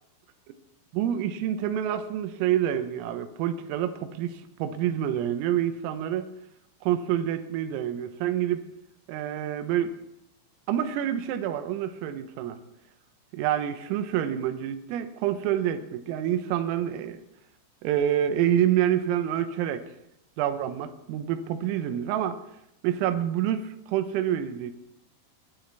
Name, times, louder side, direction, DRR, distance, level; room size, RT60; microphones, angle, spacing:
voice 1, 0.9-6.3 6.8-8.6 9.1-10.0 10.7-12.6 13.3-17.2 17.8-19.9 20.4-22.4 22.8-24.7, right 10 dB, 90° right, 9 dB, 3.6 m, -27 dB
21.5 x 12.0 x 3.4 m, 0.81 s
omnidirectional pair, 5.8 m